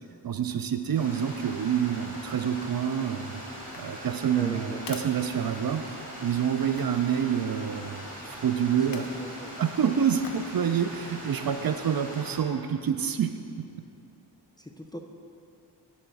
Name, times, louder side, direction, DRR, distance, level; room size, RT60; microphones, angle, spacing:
voice 1, 0.2-5.8 6.2-9.1 9.6-13.3, right 8 dB, 55° right, 8 dB, 0.5 m, -27 dB
Stream, 0.9-12.4, equal, 20° right, 2.1 m, -41 dB
sound 1, 3.6-6.1 6.7-7.1 8.8-9.2 10.2-10.6 11.0-11.1, left 5 dB, 55° left, 0.7 m, -46 dB
voice 2, 4.3-4.8 8.6-9.6 14.6-15.0, equal, 10° left, 3 dB, 0.4 m, -41 dB
9.0 x 4.2 x 6.1 m, 2.6 s
wide cardioid pair, 90°, 42 cm